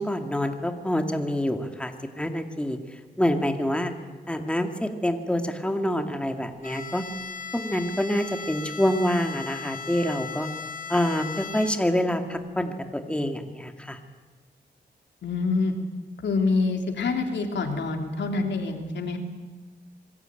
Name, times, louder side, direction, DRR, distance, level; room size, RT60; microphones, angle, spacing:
voice 1, 0.0-2.8 3.2-3.9 4.3-7.1 7.5-10.5 10.9-14.0, equal, 5° left, 5 dB, 2.2 m, -26 dB
Bowed string instrument, 6.6-12.1, left 6 dB, 50° left, 2.1 m, -37 dB
voice 2, 15.2-15.7 16.2-19.2, left 3 dB, 90° left, 4 dB, 3.3 m, -26 dB
26.5 x 22.0 x 9.1 m, 1.3 s
wide cardioid pair, 100°, 18 cm